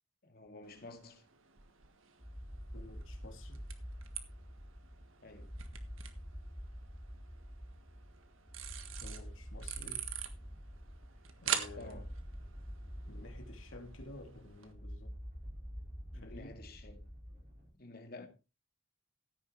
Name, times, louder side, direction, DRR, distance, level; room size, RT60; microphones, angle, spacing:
voice 1, 0.2-1.2 5.2-5.6 11.7-12.1 16.1-17.0 17.8-18.3, left 2 dB, 50° left, 2.3 m, -51 dB
sound 1, 0.6-14.7, right 9 dB, 90° right, 1.6 m, -46 dB
sound 2, 2.2-17.8, equal, ahead, 0.6 m, -47 dB
voice 2, 2.7-3.6 8.9-10.1 11.4-12.0 13.1-15.1 16.1-16.6, left 2 dB, 85° left, 2.8 m, -52 dB
sound 3, 10.3-17.7, equal, 45° right, 5.8 m, -66 dB
16.0 x 9.6 x 3.2 m
head